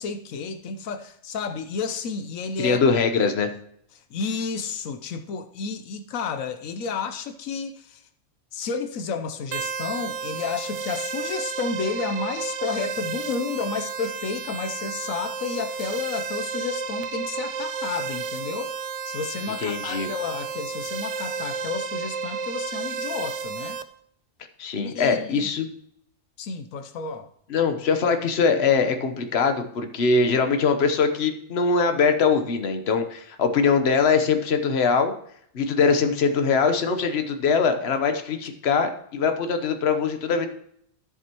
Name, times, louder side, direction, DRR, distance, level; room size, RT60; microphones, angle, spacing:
voice 1, 0.0-2.8 4.1-8.0 8.5-18.8 19.0-23.8 24.7-25.5 26.4-27.3, left 5 dB, 85° left, 8 dB, 1.1 m, -31 dB
voice 2, 2.6-3.5 19.6-20.1 24.6-25.7 27.5-35.1 35.5-40.5, left 5 dB, 55° left, 7 dB, 1.2 m, -22 dB
sound 1, 9.5-23.8, right 5 dB, 70° right, 0.9 m, -32 dB
13.5 x 7.3 x 3.0 m, 0.68 s
omnidirectional pair, 1.4 m